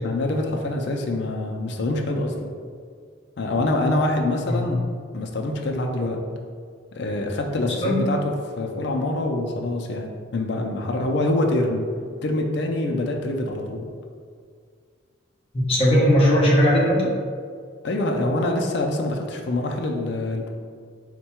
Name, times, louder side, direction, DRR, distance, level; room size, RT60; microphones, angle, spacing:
voice 1, 0.0-2.5 3.4-4.8 5.1-6.2 7.0-8.2 8.6-11.9 12.2-13.9 17.8-20.5, left 2 dB, 55° left, 2 dB, 0.4 m, -25 dB
voice 2, 7.6-8.0 15.5-17.1, equal, 30° left, -5 dB, 0.7 m, -19 dB
4.4 x 2.2 x 4.3 m, 2.1 s
head